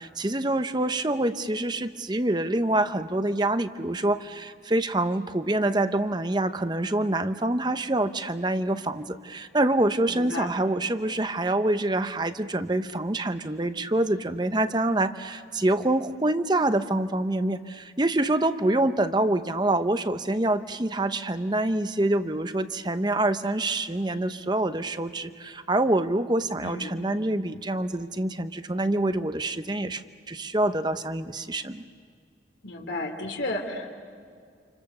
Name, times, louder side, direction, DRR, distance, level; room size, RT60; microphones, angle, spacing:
voice 1, 0.0-31.8, right 1 dB, 25° right, 10 dB, 0.8 m, -26 dB
voice 2, 10.1-10.5 26.6-27.0 32.6-33.9, left 2 dB, 85° left, 2 dB, 2.9 m, -33 dB
29.5 x 28.0 x 6.8 m, 2.2 s
head